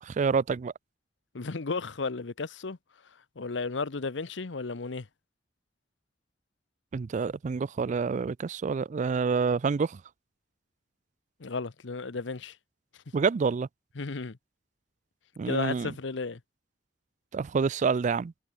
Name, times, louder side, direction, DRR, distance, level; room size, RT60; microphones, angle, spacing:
voice 1, 0.0-0.7 6.9-10.0 13.1-13.7 15.4-15.9 17.3-18.3, right 5 dB, 40° right, 0.4 m, -27 dB
voice 2, 1.3-2.8 3.4-5.1 11.4-12.6 14.0-14.4 15.5-16.4, left 4 dB, 80° left, 0.9 m, -33 dB
head